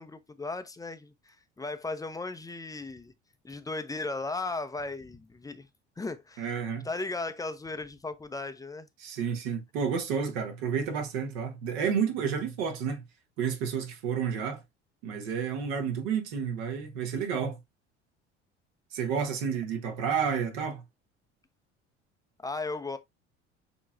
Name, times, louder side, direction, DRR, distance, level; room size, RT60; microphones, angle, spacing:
voice 1, 0.0-3.1 3.4-5.7 6.0-6.5 6.8-8.9 22.4-23.0, left 3 dB, 10° left, 0.5 m, -36 dB
voice 2, 6.4-6.9 9.0-13.0 13.4-14.6 15.0-17.6 18.9-20.8, right 7 dB, 65° right, 1.2 m, -30 dB
6.7 x 3.1 x 2.4 m
figure-of-eight pair, 65°, 35 cm